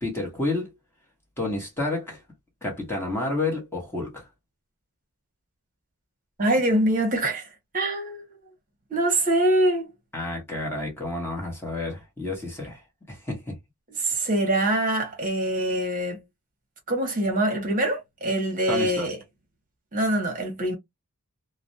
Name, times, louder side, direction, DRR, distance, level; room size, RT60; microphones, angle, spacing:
voice 1, 0.0-0.7 1.4-2.2 2.6-4.3 10.1-12.8 13.1-13.6 18.7-19.1, left 2 dB, 10° left, 0.9 m, -30 dB
voice 2, 6.4-7.5 7.7-8.3 8.9-9.9 14.0-16.2 16.9-19.2 19.9-20.8, right 1 dB, 35° right, 0.9 m, -24 dB
2.4 x 2.0 x 2.5 m
head